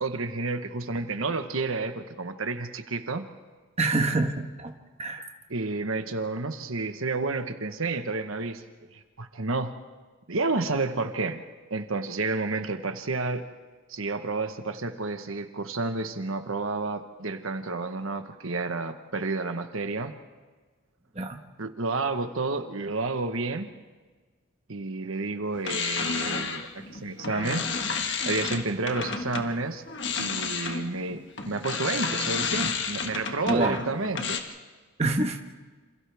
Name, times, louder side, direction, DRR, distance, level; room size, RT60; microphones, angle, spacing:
voice 1, 0.0-3.3 5.5-8.6 8.9-9.7 10.3-11.4 11.7-13.5 13.9-20.2 21.6-23.7 24.7-27.7 28.3-29.8 30.2-34.4, right 3 dB, 75° right, 7 dB, 1.2 m, -30 dB
voice 2, 3.8-4.7 5.0-5.3 21.1-21.4 33.4-33.8 35.0-35.4, right 2 dB, 30° right, 4 dB, 1.3 m, -26 dB
sound 1, 25.5-29.5 29.9-34.4, left 5 dB, 55° left, 1.6 m, -31 dB
28.0 x 27.5 x 3.5 m, 1.4 s
head